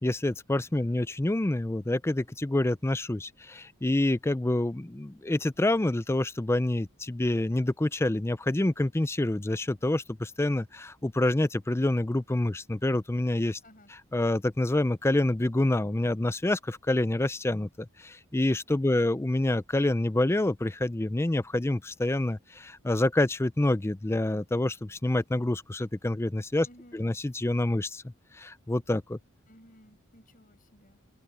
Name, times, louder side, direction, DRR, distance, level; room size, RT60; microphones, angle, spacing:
voice 1, 0.0-13.6 14.1-17.7 18.0-26.7 26.9-28.0 28.4-29.2, left 1 dB, 10° left, 0.4 m, -27 dB
voice 2, 18.8-19.2 26.6-27.2 29.5-31.0, left 1 dB, 40° left, 7.1 m, -56 dB
head